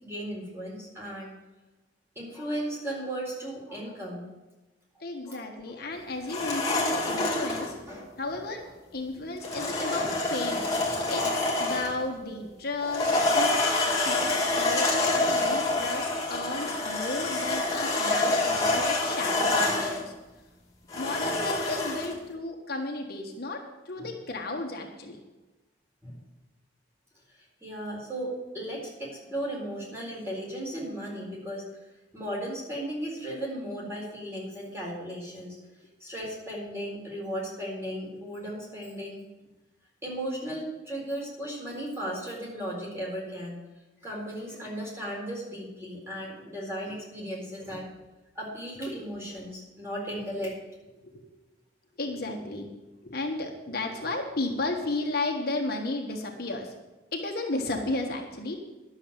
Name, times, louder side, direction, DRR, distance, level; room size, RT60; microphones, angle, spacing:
voice 1, 0.0-1.4 2.2-4.3 5.2-5.9 7.6-8.1 9.2-9.3 9.6-9.7 12.3-12.4 24.0-24.1 26.0-26.1 27.3-31.7 32.1-35.6 36.0-39.2 40.0-43.6 44.0-47.9 48.3-50.6, equal, 15° right, -4 dB, 4.1 m, -36 dB
voice 2, 5.0-7.8 8.2-8.6 8.9-10.6 11.1-20.1 20.9-25.2 51.0-51.3 52.0-52.7 53.0-56.7 57.1-58.6, left 2 dB, 50° left, 2 dB, 1.4 m, -34 dB
sound 1, 6.3-7.7 9.4-12.0 12.8-20.0 20.9-22.1, left 2 dB, 20° left, 2.3 m, -27 dB
11.5 x 7.0 x 8.8 m, 1.1 s
head